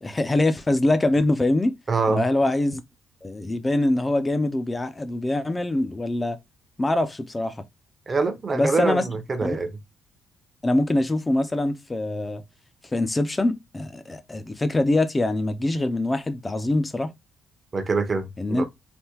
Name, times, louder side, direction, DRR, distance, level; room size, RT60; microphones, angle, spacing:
voice 1, 0.0-1.8 2.1-2.8 3.2-6.4 6.8-7.6 8.5-9.0 9.4-9.6 10.6-12.4 12.9-17.1 18.4-18.7, left 2 dB, 20° left, 0.5 m, -24 dB
voice 2, 1.9-2.2 8.1-9.7 17.7-18.7, right 4 dB, 35° right, 0.7 m, -24 dB
3.4 x 2.1 x 2.9 m
cardioid pair, 90°, 0 cm